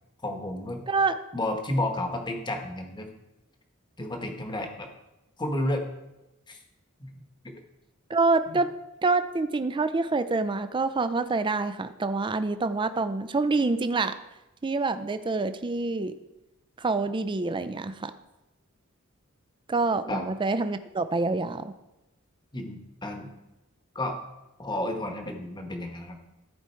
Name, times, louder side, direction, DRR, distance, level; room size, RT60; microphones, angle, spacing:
voice 1, 0.2-0.8 1.3-3.1 4.0-4.9 5.4-5.8 6.5-6.6 7.0-7.5 8.5-8.6 20.1-20.3 22.5-23.3 23.9-24.2 24.6-26.2, left 1 dB, 20° left, 4 dB, 1.1 m, -31 dB
voice 2, 0.9-1.2 8.1-8.7 9.0-14.1 14.6-16.1 16.8-18.1 19.7-21.7, right 3 dB, 25° right, 11 dB, 0.4 m, -26 dB
14.0 x 4.9 x 4.5 m, 0.97 s
head